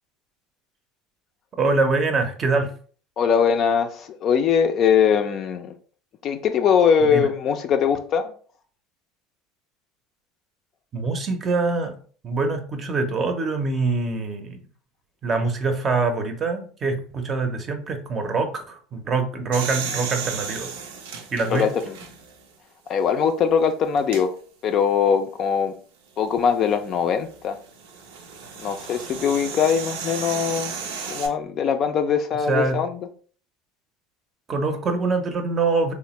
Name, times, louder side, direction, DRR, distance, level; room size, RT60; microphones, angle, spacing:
voice 1, 1.6-2.7 7.1-7.3 10.9-11.9 12.2-14.6 15.2-20.7 21.3-21.7 32.5-32.8 34.5-35.9, right 3 dB, 30° right, 0.6 m, -24 dB
voice 2, 3.2-5.7 6.2-8.3 21.5-21.9 22.9-24.3 24.6-25.7 26.2-27.6 28.6-30.7 31.1-33.0, left 7 dB, 45° left, 0.4 m, -21 dB
sound 1, 19.5-22.4 23.0-23.1 24.0-24.2 26.4-31.3, right 6 dB, 90° right, 0.5 m, -34 dB
3.3 x 2.0 x 2.9 m
supercardioid pair, 115°, 0 cm